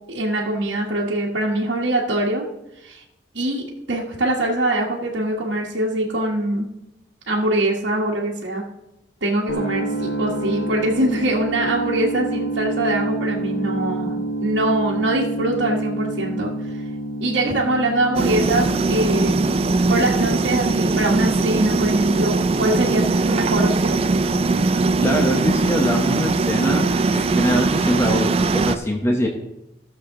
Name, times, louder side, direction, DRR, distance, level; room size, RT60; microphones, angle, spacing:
voice 1, 0.1-2.5 2.8-3.0 3.3-6.7 7.3-8.6 9.2-16.5 17.2-19.4 19.9-24.1, right 1 dB, 75° right, -5 dB, 1.4 m, -23 dB
sound 1, 9.5-25.4, right 2 dB, 70° left, 1.0 m, -30 dB
sound 2, 18.2-28.8, right 3 dB, 30° right, 0.4 m, -20 dB
voice 2, 25.0-26.9 27.1-29.3, equal, 15° left, 1 dB, 1.0 m, -22 dB
15.5 x 6.7 x 3.8 m, 0.90 s
head